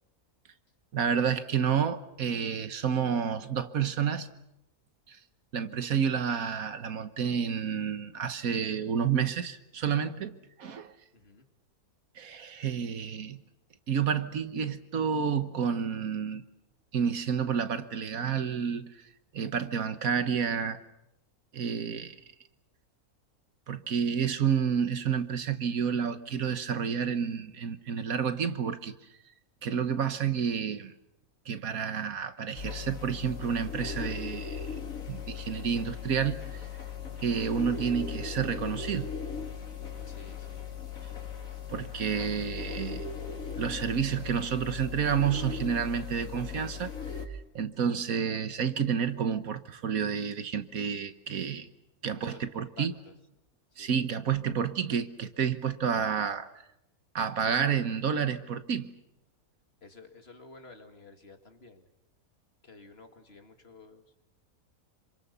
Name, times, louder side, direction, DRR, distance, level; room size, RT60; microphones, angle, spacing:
voice 1, 0.9-4.3 5.1-5.2 5.5-10.3 10.6-10.9 12.2-13.4 13.9-16.4 16.9-18.8 19.3-20.8 21.5-22.2 23.7-28.9 29.6-30.9 31.5-34.6 35.1-36.7 37.2-39.1 41.7-43.0 43.6-46.9 47.2-51.7 52.0-52.9 53.8-56.5 57.1-58.9, right 7 dB, 70° right, 1.6 m, -30 dB
voice 2, 11.1-11.5 40.0-41.0 52.1-53.1 53.8-53.9 59.8-61.8 62.6-64.2, left 3 dB, 45° left, 2.3 m, -52 dB
sound 1, 32.6-47.3, left 6 dB, 65° left, 2.8 m, -38 dB
27.5 x 26.0 x 6.9 m
omnidirectional pair, 1.5 m